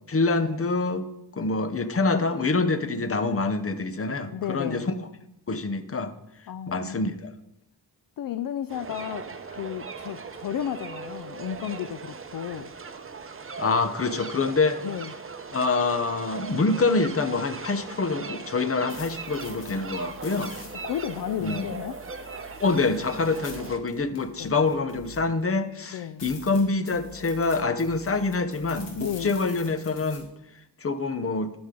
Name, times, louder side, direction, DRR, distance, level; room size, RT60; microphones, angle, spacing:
voice 1, 0.1-1.0 1.3-4.9 5.5-6.1 6.7-7.3 13.6-14.8 15.5-20.5 21.4-21.7 22.6-30.3 30.8-31.5, left 3 dB, 35° left, 10 dB, 0.9 m, -26 dB
voice 2, 4.3-4.9 6.5-7.1 8.2-12.7 14.8-15.1 20.8-22.0 24.4-24.5 25.9-26.3 29.0-29.4, left 10 dB, 55° left, 12 dB, 0.5 m, -33 dB
sound 1, 8.7-23.8, right 5 dB, 30° right, 0.8 m, -39 dB
sound 2, 18.6-25.4 25.8-25.9 26.2-30.2, left 4 dB, 85° left, 2.3 m, -46 dB
11.5 x 7.1 x 3.8 m, 0.83 s
cardioid pair, 85°, 41 cm